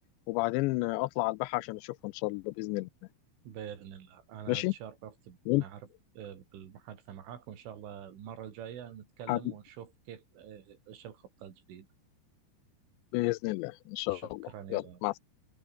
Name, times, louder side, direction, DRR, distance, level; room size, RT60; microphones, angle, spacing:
voice 1, 0.3-2.9 4.5-4.7 5.5-5.6 9.3-9.4 13.1-15.2, left 22 dB, 80° left, 2.7 m, -31 dB
voice 2, 3.4-5.9 6.2-11.9 14.1-15.0, right 9 dB, 90° right, 5.6 m, -46 dB
omnidirectional pair, 5.4 m